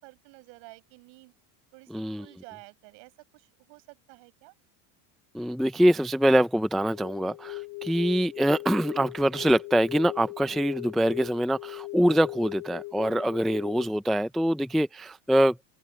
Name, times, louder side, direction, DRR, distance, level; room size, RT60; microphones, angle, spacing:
voice 1, 0.0-1.3 1.7-4.5, right 31 dB, 65° right, 6.2 m, -51 dB
voice 2, 1.9-2.3 5.3-15.6, equal, ahead, 0.4 m, -24 dB
sound 1, 6.9-13.9, left 23 dB, 55° left, 3.1 m, -40 dB
open air
supercardioid pair, 120°, 48 cm